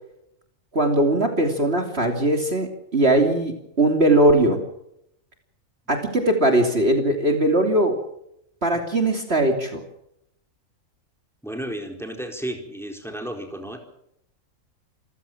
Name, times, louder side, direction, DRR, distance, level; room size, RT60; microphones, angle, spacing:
voice 1, 0.7-4.6 5.9-8.0 8.6-9.8, right 1 dB, 45° right, 4 dB, 3.2 m, -20 dB
voice 2, 11.4-13.8, right 1 dB, ahead, 3 dB, 4.2 m, -33 dB
28.0 x 15.5 x 7.4 m, 0.77 s
omnidirectional pair, 1.5 m